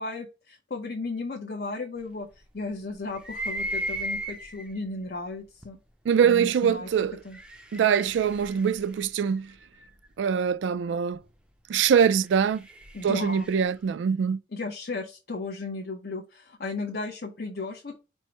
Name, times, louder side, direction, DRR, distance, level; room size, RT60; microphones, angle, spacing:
voice 1, 0.0-2.3 2.5-5.8 6.2-6.9 7.2-7.4 12.9-13.5 14.5-18.0, left 3 dB, 55° left, 0.6 m, -35 dB
sound 1, 3.1-4.8 5.6-5.7 7.0-9.9 12.0-13.7, right 1 dB, 5° right, 0.4 m, -36 dB
voice 2, 6.1-7.2 7.7-9.5 10.2-11.2 11.7-12.6 13.0-14.4, right 7 dB, 75° right, 0.3 m, -23 dB
4.4 x 2.0 x 4.4 m
head